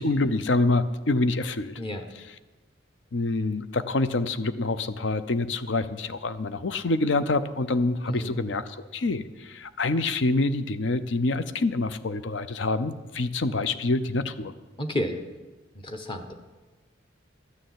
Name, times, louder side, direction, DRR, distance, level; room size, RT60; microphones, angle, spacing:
voice 1, 0.0-1.8 3.1-14.5, left 2 dB, 70° left, 13 dB, 0.7 m, -26 dB
voice 2, 8.1-8.4 14.8-15.2 15.7-16.3, left 1 dB, 30° left, 6 dB, 1.0 m, -31 dB
12.5 x 6.6 x 9.4 m, 1.2 s
head